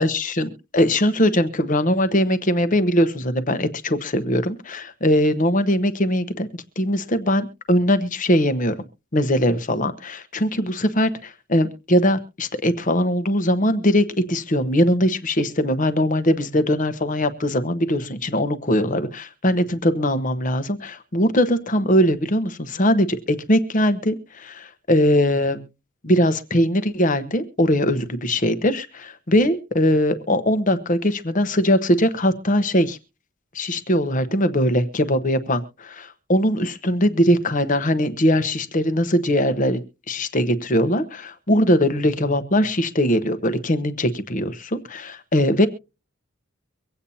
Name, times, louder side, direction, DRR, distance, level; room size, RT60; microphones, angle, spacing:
voice 1, 0.0-6.5 6.8-8.9 9.1-25.6 26.0-33.0 33.5-45.7, equal, 40° left, 11 dB, 1.0 m, -21 dB
24.0 x 8.6 x 2.8 m, 0.31 s
head